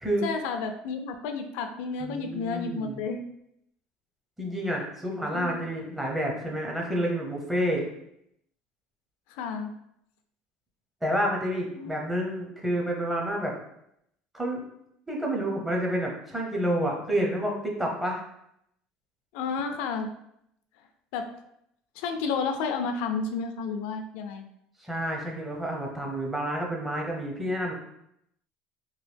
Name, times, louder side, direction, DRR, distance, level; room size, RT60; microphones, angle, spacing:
voice 1, 0.2-3.2 5.3-5.6 9.3-9.7 11.8-11.9 19.3-20.1 21.1-21.3 22.0-24.5, left 5 dB, 80° left, 6 dB, 0.4 m, -31 dB
voice 2, 2.0-3.0 4.4-7.9 11.0-13.5 14.3-14.6 15.1-18.2 24.9-27.7, equal, 10° right, -1 dB, 0.7 m, -29 dB
3.0 x 2.3 x 3.3 m, 0.76 s
cardioid pair, 135°, 3 cm